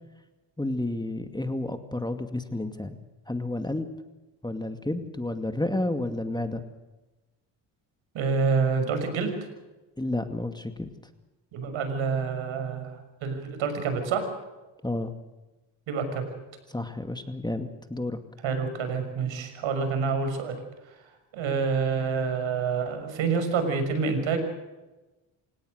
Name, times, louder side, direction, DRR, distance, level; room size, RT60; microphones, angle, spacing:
voice 1, 0.6-3.0 3.3-3.9 4.4-6.6 10.0-10.9 14.8-15.1 16.7-18.2, left 2 dB, 10° left, 7 dB, 2.3 m, -31 dB
voice 2, 8.1-9.3 11.5-14.3 15.9-16.2 18.4-20.6 20.9-21.0 21.3-24.5, right 5 dB, 70° right, 8 dB, 6.3 m, -27 dB
27.5 x 18.5 x 6.6 m, 1.1 s
hypercardioid pair, 60°, 49 cm